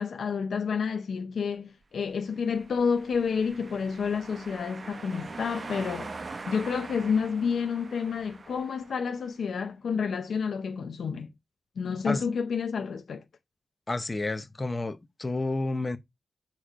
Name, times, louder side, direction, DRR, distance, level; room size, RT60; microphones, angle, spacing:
voice 1, 0.0-11.3 11.8-13.2, left 6 dB, 85° left, 0.5 m, -30 dB
sound 1, 2.4-9.2, right 3 dB, 40° right, 0.7 m, -43 dB
voice 2, 13.9-16.0, left 2 dB, 25° left, 0.7 m, -30 dB
6.5 x 3.1 x 4.9 m
wide cardioid pair, 145°, 0 cm